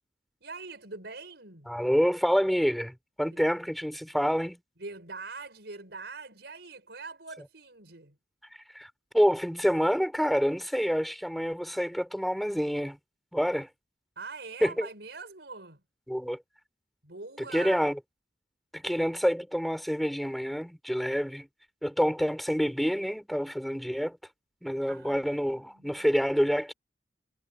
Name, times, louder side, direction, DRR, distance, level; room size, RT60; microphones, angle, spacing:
voice 1, 0.4-1.7 3.3-3.6 4.8-8.1 14.2-15.8 17.0-17.8 24.9-26.1, right 4 dB, 65° right, 6.6 m, -43 dB
voice 2, 1.7-4.6 8.7-13.0 13.3-13.7 14.6-14.9 16.1-16.4 17.5-17.9 18.7-21.5 21.8-24.2 24.6-26.7, equal, ahead, 3.7 m, -27 dB
head